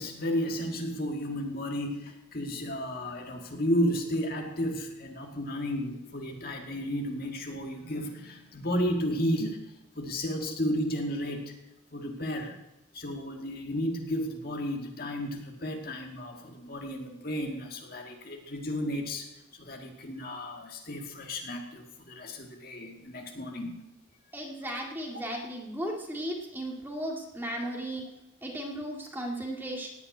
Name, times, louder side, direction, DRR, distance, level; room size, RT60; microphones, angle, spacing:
voice 1, 0.0-9.6 10.0-11.5 11.9-12.6 12.9-19.3 19.6-23.8, equal, 45° left, 2 dB, 1.9 m, -33 dB
voice 2, 24.3-28.1 28.4-29.9, right 1 dB, 10° right, 0 dB, 1.9 m, -35 dB
17.0 x 5.8 x 9.4 m, 0.89 s
head